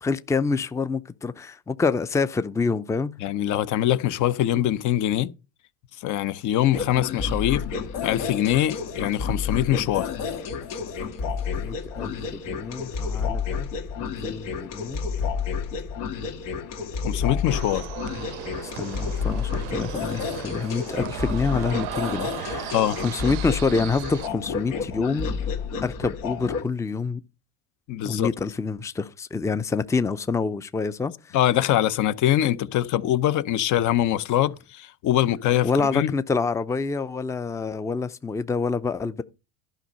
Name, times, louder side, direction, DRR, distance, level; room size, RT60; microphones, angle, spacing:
voice 1, 0.0-3.1 11.6-13.7 14.0-15.0 18.6-22.8 23.0-25.3 25.8-27.2 28.0-31.4 35.6-39.2, left 4 dB, 10° left, 0.5 m, -27 dB
voice 2, 3.2-5.3 6.0-7.6 8.0-10.1 17.0-17.9 22.7-23.0 27.9-28.3 31.3-36.1, left 12 dB, 55° left, 0.8 m, -23 dB
sound 1, 6.7-26.6, left 5 dB, 85° left, 2.3 m, -30 dB
sound 2, 17.5-24.3, right 16 dB, 75° right, 0.7 m, -37 dB
11.5 x 5.4 x 5.3 m
supercardioid pair, 90°, 36 cm